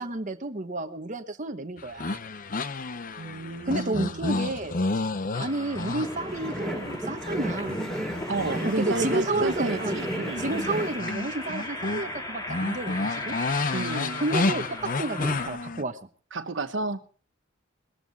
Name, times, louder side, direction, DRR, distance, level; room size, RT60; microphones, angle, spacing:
voice 1, 0.0-2.2 3.7-4.7 5.4-7.9 8.8-13.3 14.2-16.0, right 2 dB, 40° right, 7 dB, 1.1 m, -31 dB
sound 1, 1.8-7.0 7.4-12.1 12.4-15.8, left 3 dB, 45° left, 0.7 m, -31 dB
voice 2, 3.2-4.2 8.3-10.4 13.7-14.2 16.3-17.0, right 2 dB, 65° right, 9 dB, 1.1 m, -31 dB
Cross Walk, 5.3-15.5, left 1 dB, 20° left, 4.3 m, -38 dB
sound 2, 6.0-11.1, right 1 dB, 5° left, 2.9 m, -33 dB
20.0 x 14.0 x 4.1 m, 0.39 s
head